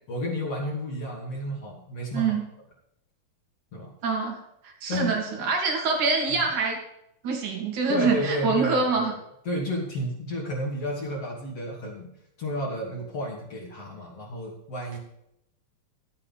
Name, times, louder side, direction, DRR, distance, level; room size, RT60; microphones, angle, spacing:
voice 1, 0.1-2.4 3.7-3.9 4.9-5.2 7.9-9.2 9.4-12.1 12.4-15.0, equal, 45° left, -4 dB, 3.4 m, -31 dB
voice 2, 4.0-4.4 4.8-6.8 7.2-9.1, right 4 dB, 60° right, 2 dB, 3.6 m, -25 dB
12.0 x 9.0 x 5.4 m, 0.78 s
omnidirectional pair, 4.2 m